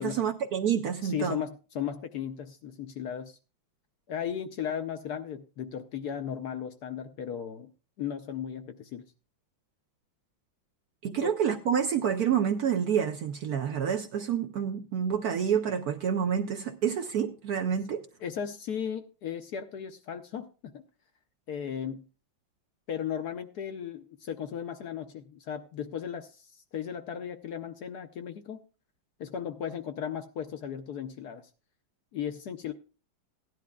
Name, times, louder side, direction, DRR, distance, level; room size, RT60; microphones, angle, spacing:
voice 1, 0.0-1.4 11.0-18.0, right 8 dB, 70° right, 7 dB, 0.9 m, -28 dB
voice 2, 1.0-3.4 4.1-7.7 8.0-9.0 11.1-11.3 18.2-20.8 21.5-22.0 22.9-28.6 29.2-31.5 32.1-32.7, left 8 dB, 65° left, 8 dB, 1.0 m, -36 dB
16.5 x 10.5 x 2.3 m, 0.34 s
omnidirectional pair, 2.1 m